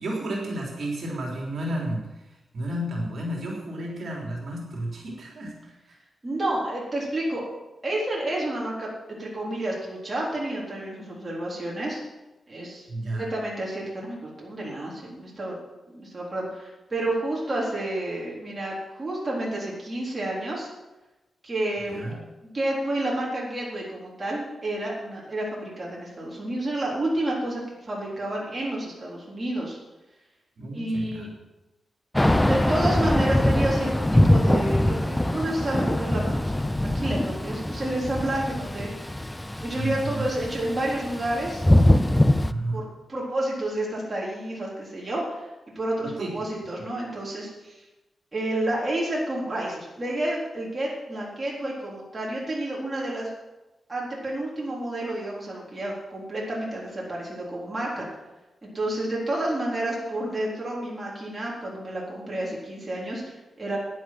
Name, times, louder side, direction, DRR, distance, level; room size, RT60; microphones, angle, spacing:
voice 1, 0.0-5.7 12.9-13.3 21.9-22.2 30.6-31.3 39.7-40.3 42.4-42.8 46.0-46.3, right 1 dB, 60° right, -2 dB, 3.6 m, -32 dB
voice 2, 6.2-7.4 7.8-12.0 12.5-15.6 15.9-20.7 21.4-22.2 22.5-29.8 30.7-31.3 32.4-39.2 39.6-41.6 42.7-45.5 45.8-47.8 48.3-53.3 53.9-58.1 58.6-63.8, right 1 dB, 25° right, -4 dB, 3.8 m, -30 dB
Thunder / Rain, 32.2-42.5, left 1 dB, 10° left, 0.5 m, -23 dB
11.0 x 10.0 x 7.7 m, 1.1 s
wide cardioid pair, 135°, 0 cm